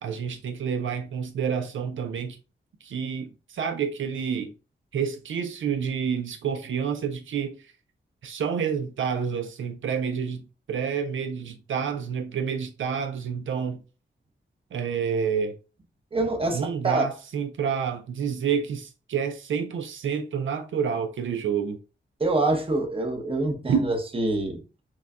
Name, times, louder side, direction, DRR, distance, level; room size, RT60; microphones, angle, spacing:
voice 1, 0.0-2.4 2.8-4.5 4.9-7.6 8.2-13.8 14.7-15.6 16.5-21.8 23.7-23.8, right 7 dB, 80° right, 0.5 m, -28 dB
voice 2, 16.1-17.0 22.2-24.6, right 2 dB, 25° right, 0.8 m, -26 dB
6.1 x 2.2 x 2.3 m
wide cardioid pair, 130°, 20 cm